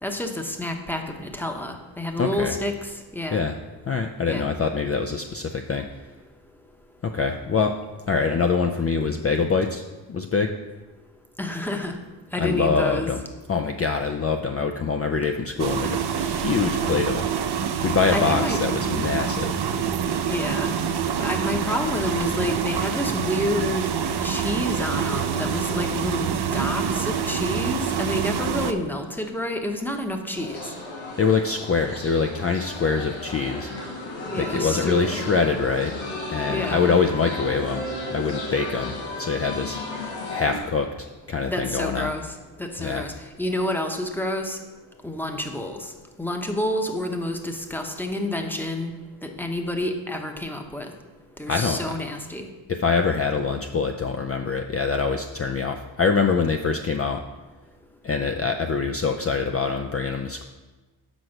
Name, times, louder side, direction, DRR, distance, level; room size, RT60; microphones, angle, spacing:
voice 1, 0.0-3.4 4.2-4.5 11.4-11.9 12.3-13.1 18.1-18.6 20.3-20.7 21.1-23.9 24.2-30.7 34.3-35.3 36.5-36.9 41.5-42.2 42.6-43.1 43.4-44.6 45.0-45.9 46.2-48.9 49.2-50.9 51.4-52.5, left 1 dB, 5° left, 4 dB, 0.9 m, -29 dB
voice 2, 2.2-2.5 3.3-3.6 3.9-5.9 7.0-7.8 8.1-10.6 12.4-13.2 13.5-17.3 17.8-19.6 31.2-33.7 34.2-36.0 36.3-39.8 40.3-42.1 42.8-43.1 51.5-51.8 52.7-57.2 58.0-60.4, left 5 dB, 30° left, 5 dB, 0.4 m, -24 dB
sound 1, 15.6-28.7, right 7 dB, 55° right, 0.6 m, -26 dB
sound 2, 30.3-40.6, left 2 dB, 90° left, 2.1 m, -34 dB
6.2 x 4.6 x 6.5 m, 1.2 s
cardioid pair, 80°, 47 cm